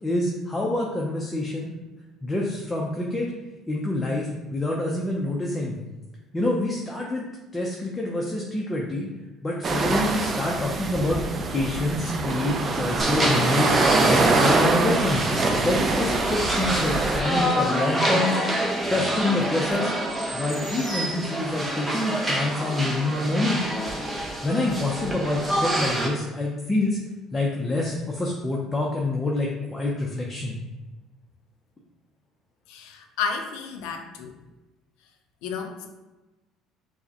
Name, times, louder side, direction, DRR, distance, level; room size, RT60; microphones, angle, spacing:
voice 1, 0.0-1.7 2.2-3.3 3.7-5.8 6.3-7.2 7.5-9.1 9.4-11.2 11.5-15.3 15.6-18.4 18.9-19.9 20.3-23.6 24.4-27.0 27.3-30.6, left 2 dB, 15° left, -2 dB, 0.5 m, -26 dB
sound 1, 9.6-17.2, right 3 dB, 35° right, 0.4 m, -24 dB
sound 2, 13.0-26.1, right 1 dB, 15° right, 0.7 m, -27 dB
voice 2, 32.7-34.3 35.4-35.9, left 5 dB, 85° left, 4 dB, 0.5 m, -32 dB
4.8 x 2.1 x 2.8 m, 1.1 s
supercardioid pair, 100°, 0 cm